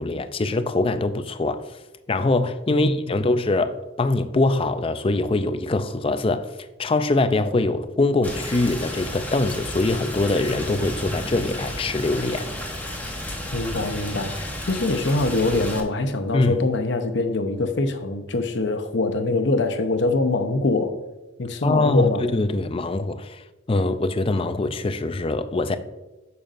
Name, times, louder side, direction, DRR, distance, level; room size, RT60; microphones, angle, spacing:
voice 1, 0.0-1.8 2.1-12.5 16.3-16.6 21.6-25.8, left 2 dB, 25° left, 0.4 m, -23 dB
Rain, 8.2-15.8, left 1 dB, 10° left, 1.0 m, -32 dB
voice 2, 13.5-20.9 21.4-22.2, left 2 dB, 60° left, 0.8 m, -23 dB
8.9 x 7.0 x 2.5 m
head